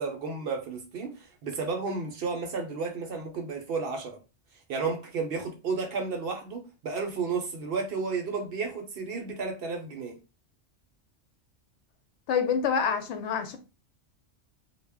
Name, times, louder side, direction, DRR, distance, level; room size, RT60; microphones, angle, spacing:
voice 1, 0.0-4.2 4.7-10.2, right 4 dB, 65° right, 0.7 m, -32 dB
voice 2, 12.3-13.6, left 6 dB, 70° left, 0.8 m, -27 dB
2.1 x 2.0 x 3.4 m
omnidirectional pair, 1.2 m